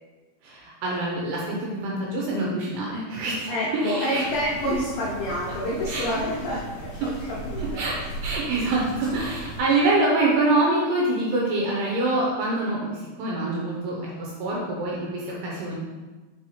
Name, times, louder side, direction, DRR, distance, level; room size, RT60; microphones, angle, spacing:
voice 1, 0.4-3.5 3.8-4.3 5.9-6.2 7.6-7.9 8.2-15.8, right 2 dB, 75° right, -3 dB, 2.6 m, -25 dB
voice 2, 3.5-8.1, equal, 90° left, -6 dB, 1.9 m, -28 dB
sound 1, 4.3-9.6, right 2 dB, 40° left, 2.0 m, -37 dB
6.6 x 4.2 x 4.2 m, 1.3 s
omnidirectional pair, 5.5 m